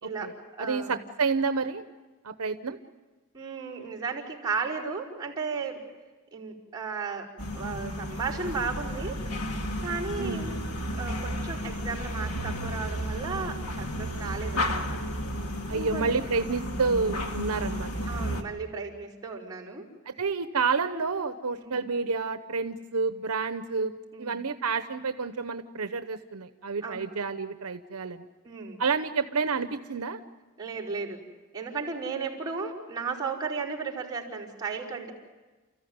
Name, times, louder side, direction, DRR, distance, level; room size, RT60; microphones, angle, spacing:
voice 1, 0.0-1.0 3.3-5.8 6.3-9.2 9.8-10.6 10.9-15.0 15.7-16.1 18.1-19.9 21.6-21.8 24.1-24.4 26.8-27.1 28.4-28.8 30.6-31.2 31.5-35.1, right 4 dB, 20° right, -6 dB, 5.0 m, -35 dB
voice 2, 0.6-1.8 2.2-2.8 10.2-10.4 13.4-13.5 15.7-18.3 20.1-23.9 24.2-28.3 28.8-30.2, right 4 dB, 75° right, 9 dB, 0.9 m, -29 dB
sound 1, 7.4-18.4, equal, 80° left, 2.0 m, -33 dB
30.0 x 15.0 x 9.5 m, 1.3 s
head